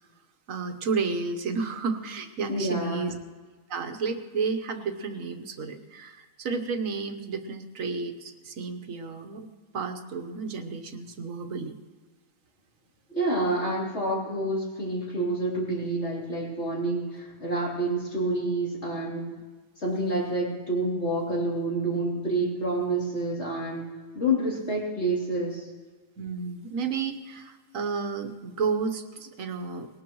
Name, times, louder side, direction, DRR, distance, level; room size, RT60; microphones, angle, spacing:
voice 1, 0.5-3.1 3.7-9.5 9.7-11.7 26.2-29.9, right 5 dB, 85° right, 8 dB, 1.5 m, -32 dB
voice 2, 2.5-3.1 13.1-19.3 19.8-23.8 24.1-25.7, right 1 dB, 55° left, -5 dB, 3.7 m, -28 dB
19.5 x 18.5 x 3.1 m, 1.4 s
omnidirectional pair, 1.3 m